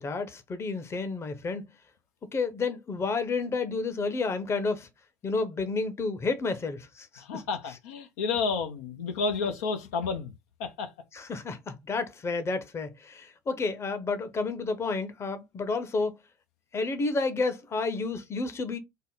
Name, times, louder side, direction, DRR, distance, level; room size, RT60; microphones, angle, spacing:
voice 1, 0.0-1.6 2.3-4.9 5.2-7.4 11.1-16.2 16.7-18.8, left 3 dB, 35° left, 0.8 m, -30 dB
voice 2, 7.2-10.3 10.6-10.9, left 4 dB, 80° left, 0.6 m, -31 dB
3.7 x 2.1 x 3.8 m
hypercardioid pair, 70°, 8 cm